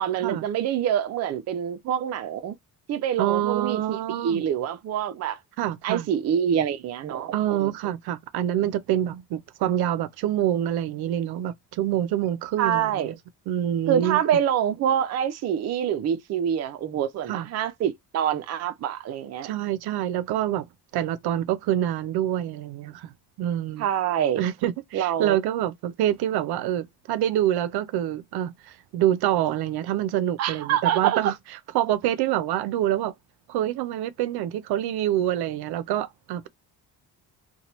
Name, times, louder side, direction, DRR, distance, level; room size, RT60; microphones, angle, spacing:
voice 1, 0.0-2.5 2.9-5.4 5.8-7.3 7.6-7.9 12.6-13.1 13.9-19.5 23.8-24.4 24.9-25.4 30.4-31.2, right 9 dB, 45° right, 0.5 m, -26 dB
voice 2, 3.2-4.4 5.6-6.1 7.3-13.2 13.5-14.2 17.3-17.5 19.4-20.7 20.9-23.1 23.4-23.9 24.4-31.4 31.7-33.1 33.5-36.5, right 11 dB, 90° right, 0.5 m, -26 dB
2.9 x 2.2 x 2.9 m
cardioid pair, 160°, 37 cm